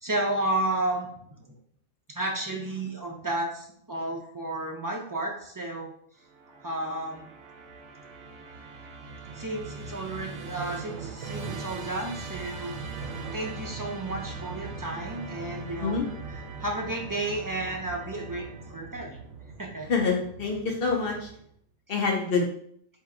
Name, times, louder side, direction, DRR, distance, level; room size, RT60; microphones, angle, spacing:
voice 1, 0.0-1.1 1.4-1.5 2.1-5.9 6.6-7.3 9.3-12.8 13.3-16.0 16.6-19.2 19.6-19.9, right 2 dB, 25° right, -1 dB, 0.4 m, -32 dB
Musical instrument, 6.3-21.6, right 4 dB, 70° right, 0.9 m, -40 dB
voice 2, 19.9-21.3 21.9-22.5, left 4 dB, 50° left, 1 dB, 0.9 m, -26 dB
4.5 x 2.8 x 3.7 m, 0.65 s
omnidirectional pair, 1.3 m